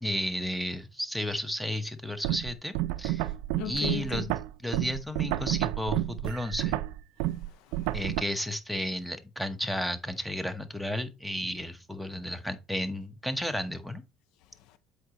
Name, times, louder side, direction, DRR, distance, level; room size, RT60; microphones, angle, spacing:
voice 1, 0.0-3.3 3.6-4.3 4.6-6.8 7.9-14.0, left 1 dB, ahead, 1.0 m, -33 dB
sound 1, 2.2-8.2, right 15 dB, 85° right, 0.4 m, -30 dB
voice 2, 3.6-4.3 7.2-8.0 14.4-14.8, left 11 dB, 80° left, 0.5 m, -40 dB
7.7 x 4.8 x 3.0 m
supercardioid pair, 100°, 0 cm